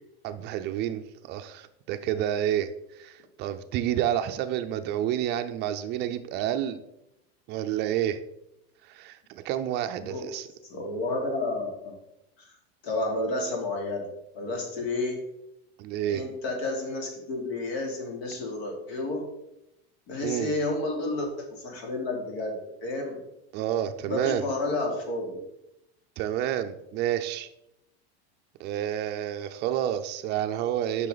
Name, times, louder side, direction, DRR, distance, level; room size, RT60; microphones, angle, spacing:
voice 1, 0.2-6.8 7.5-8.2 8.8-10.5 15.8-16.2 20.2-20.6 23.5-24.5 26.2-27.5 28.6-31.1, right 11 dB, 35° right, 8 dB, 0.4 m, -29 dB
voice 2, 10.7-12.0 12.4-12.5 12.8-14.0 14.3-15.2 16.0-19.2 20.1-21.3 21.6-22.5 22.8-23.2 24.0-25.4, left 2 dB, 75° left, 1 dB, 3.0 m, -31 dB
10.5 x 5.8 x 3.9 m, 0.86 s
supercardioid pair, 155°, 32 cm